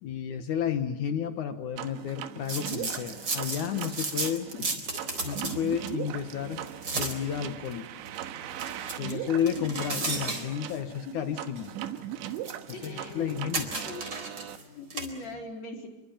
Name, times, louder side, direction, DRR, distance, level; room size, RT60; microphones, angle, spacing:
voice 1, 0.0-4.5 5.2-6.6 6.9-7.9 9.0-11.7 12.8-13.7, left 8 dB, 65° left, 9 dB, 2.0 m, -31 dB
sound 1, 1.8-14.6, right 12 dB, 85° right, 3.6 m, -39 dB
sound 2, 2.4-15.3, right 3 dB, 25° right, 4.2 m, -37 dB
voice 2, 12.7-13.3 13.9-14.0 14.4-15.9, left 3 dB, 40° left, 2 dB, 5.1 m, -41 dB
29.0 x 23.5 x 7.2 m, 1.1 s
omnidirectional pair, 5.2 m